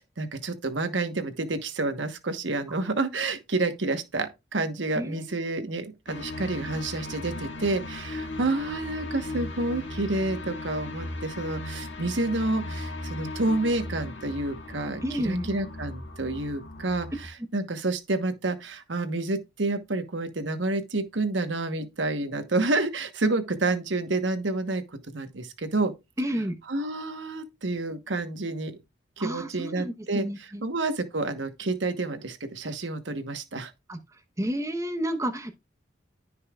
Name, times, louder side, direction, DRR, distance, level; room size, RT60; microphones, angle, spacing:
voice 1, 0.0-25.9 26.7-28.8 29.2-30.2 30.6-33.7, right 2 dB, 85° right, 1.2 m, -29 dB
voice 2, 5.0-5.5 15.0-15.5 26.2-26.6 29.2-30.6 33.9-34.0 34.4-35.5, equal, 15° right, 1.0 m, -30 dB
sound 1, 6.1-17.3, left 2 dB, 85° left, 2.1 m, -37 dB
15.0 x 5.6 x 2.4 m
head